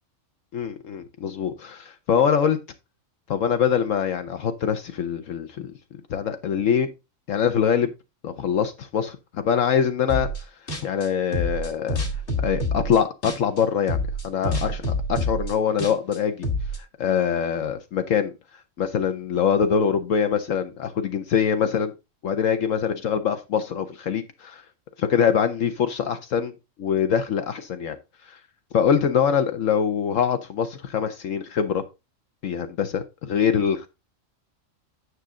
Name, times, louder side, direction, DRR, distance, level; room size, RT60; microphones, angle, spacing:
voice 1, 0.5-2.6 3.3-5.7 6.1-6.9 7.3-7.9 8.2-10.3 10.8-12.0 12.4-16.5 17.0-18.3 18.8-21.9 22.2-24.6 25.0-26.5 26.8-28.0 28.3-28.4 28.7-31.8 32.4-33.9, left 7 dB, 75° left, 1.2 m, -24 dB
sound 1, 10.1-10.4 10.7-13.6 13.9-16.8, left 1 dB, 55° left, 2.0 m, -27 dB
9.6 x 6.3 x 3.7 m
omnidirectional pair, 1.4 m